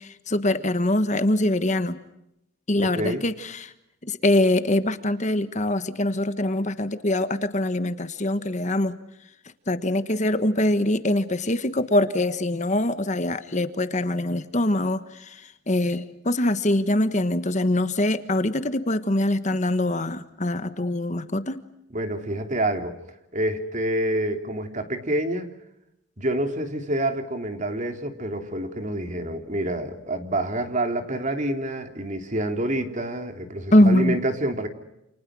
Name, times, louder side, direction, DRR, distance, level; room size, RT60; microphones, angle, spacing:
voice 1, 0.0-2.0 2.7-3.7 4.1-8.9 9.7-15.4 15.7-21.6 33.7-34.2, left 1 dB, 35° left, 11 dB, 1.4 m, -23 dB
voice 2, 2.8-3.2 21.9-22.9 23.3-25.5 26.2-34.7, right 1 dB, 40° right, 6 dB, 3.3 m, -27 dB
29.5 x 29.0 x 6.2 m, 0.84 s
head